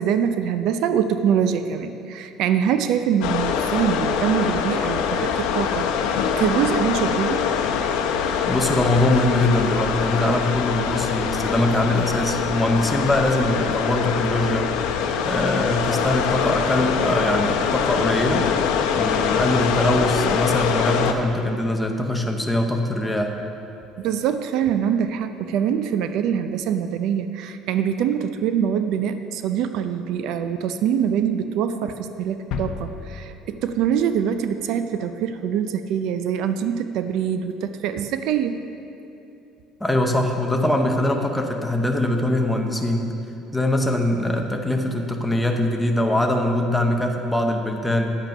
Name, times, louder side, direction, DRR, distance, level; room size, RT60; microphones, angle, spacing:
voice 1, 0.0-7.5 24.0-38.6, right 8 dB, 60° right, 9 dB, 0.4 m, -24 dB
sound 1, 3.2-21.1, left 7 dB, 90° left, 0.7 m, -23 dB
voice 2, 8.5-14.7 15.2-23.3 39.8-43.1 43.5-48.2, left 1 dB, 5° left, 2 dB, 0.7 m, -22 dB
sound 2, 32.5-34.3 34.6-34.7, left 5 dB, 55° left, 0.7 m, -34 dB
10.5 x 8.2 x 5.4 m, 2.8 s
cardioid pair, 165°, 0 cm